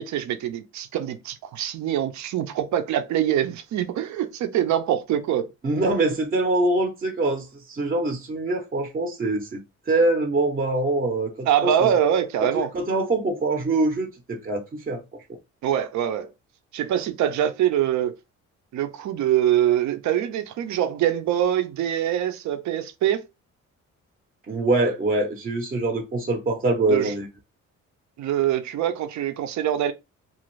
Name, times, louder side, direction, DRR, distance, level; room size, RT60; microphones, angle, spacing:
voice 1, 0.0-5.5 11.5-12.7 15.6-16.3 16.7-18.1 18.7-23.2 26.9-27.1 28.2-29.9, right 10 dB, 70° right, 0.6 m, -24 dB
voice 2, 5.6-11.9 12.7-15.0 24.5-27.3, right 2 dB, 30° right, 0.6 m, -24 dB
2.5 x 2.4 x 3.0 m
cardioid pair, 90°, 30 cm